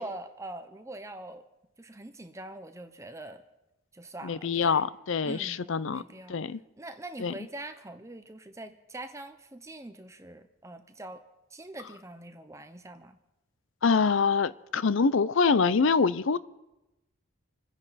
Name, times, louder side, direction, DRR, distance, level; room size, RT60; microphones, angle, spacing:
voice 1, 0.0-1.4 1.8-3.4 3.9-4.8 5.2-6.4 6.8-13.2, right 1 dB, 15° right, 8 dB, 0.7 m, -43 dB
voice 2, 4.2-6.0 6.3-6.6 7.2-7.3 13.8-16.4, left 5 dB, 60° left, 17 dB, 0.5 m, -25 dB
27.5 x 10.0 x 4.1 m, 0.98 s
head